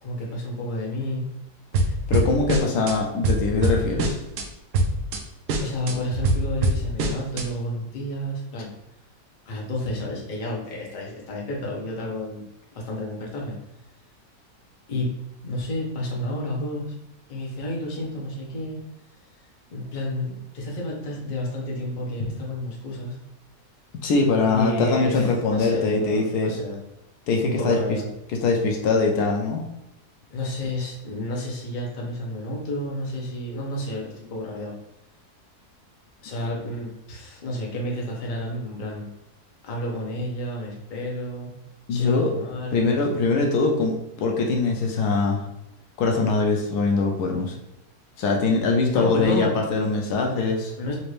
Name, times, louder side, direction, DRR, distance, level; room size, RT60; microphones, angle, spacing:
voice 1, 0.0-1.2 5.6-8.7 9.4-12.4 12.7-13.6 14.9-15.1 15.4-16.9 17.3-18.8 19.7-23.2 24.5-26.8 27.4-28.1 30.3-34.7 36.2-39.1 39.6-41.5 41.9-42.9 48.9-49.5 49.8-49.9 50.8-50.9, left 1 dB, 40° left, -2 dB, 0.8 m, -30 dB
sound 1, 1.7-2.9 3.2-4.4 4.7-5.2 5.5-7.4, right 2 dB, 80° right, 1.2 m, -23 dB
voice 2, 2.1-4.2 24.0-26.5 27.3-28.0 28.4-29.6 41.9-42.3 42.7-45.5 46.0-47.6 48.2-50.7, left 3 dB, 75° left, 1 dB, 1.1 m, -22 dB
4.2 x 2.5 x 3.2 m, 0.88 s
omnidirectional pair, 1.7 m